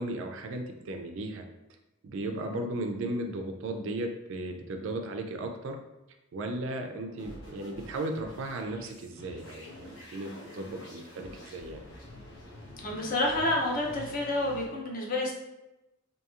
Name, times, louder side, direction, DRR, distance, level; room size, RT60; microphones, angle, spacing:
voice 1, 0.0-1.5 2.0-5.8 6.3-11.8, right 2 dB, 60° right, 4 dB, 0.3 m, -36 dB
sound 1, 7.2-14.7, left 1 dB, 65° left, 0.9 m, -47 dB
voice 2, 12.8-15.3, left 1 dB, 40° left, -1 dB, 0.5 m, -29 dB
2.8 x 2.7 x 2.3 m, 0.98 s
head